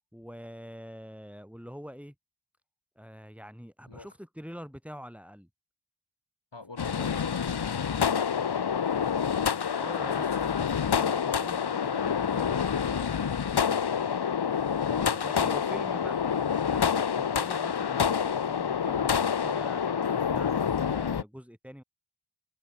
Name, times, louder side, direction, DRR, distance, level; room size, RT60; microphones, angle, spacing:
voice 1, 0.1-2.1 3.0-5.5 6.9-7.2 9.8-14.1 14.7-16.3 16.7-21.8, equal, 5° right, 7.7 m, -45 dB
voice 2, 6.5-9.6 15.3-15.5, left 3 dB, 85° left, 5.0 m, -47 dB
sound 1, 6.8-21.2, left 7 dB, 65° left, 0.7 m, -27 dB
wide cardioid pair, 40°, 42 cm